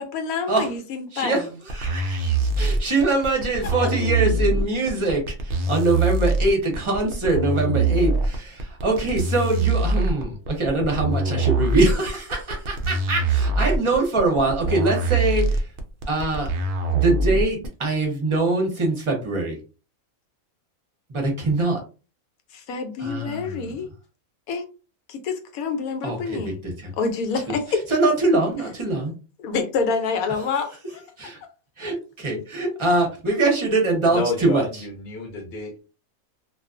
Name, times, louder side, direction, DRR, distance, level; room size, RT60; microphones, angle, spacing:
voice 1, 0.0-1.5 22.5-23.9 24.5-24.7 25.1-26.6 27.0-27.8 29.4-31.0, left 4 dB, 85° left, 1.1 m, -27 dB
sound 1, 1.7-17.7, right 3 dB, 85° right, 0.4 m, -23 dB
voice 2, 2.6-5.2 5.7-6.6 6.9-8.1 8.8-10.2 10.6-11.2 11.6-12.1 12.9-13.2 13.6-15.4 16.1-16.4 17.0-17.5 17.8-18.9 19.3-19.5 21.5-21.8 26.0-26.1 27.9-29.0 31.8-31.9 32.2-34.6, right 2 dB, 30° right, 0.6 m, -22 dB
voice 3, 34.1-35.8, left 3 dB, 55° left, 0.8 m, -30 dB
2.4 x 2.3 x 2.4 m
omnidirectional pair, 1.5 m